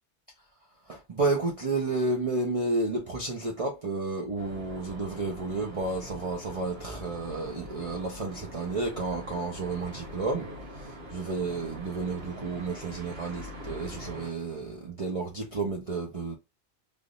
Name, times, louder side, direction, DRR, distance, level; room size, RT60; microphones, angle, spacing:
voice 1, 0.9-10.5 10.8-16.4, right 3 dB, 35° right, 0.7 m, -31 dB
sound 1, 4.4-14.3, equal, 60° right, 1.3 m, -43 dB
3.5 x 2.5 x 2.5 m
omnidirectional pair, 1.2 m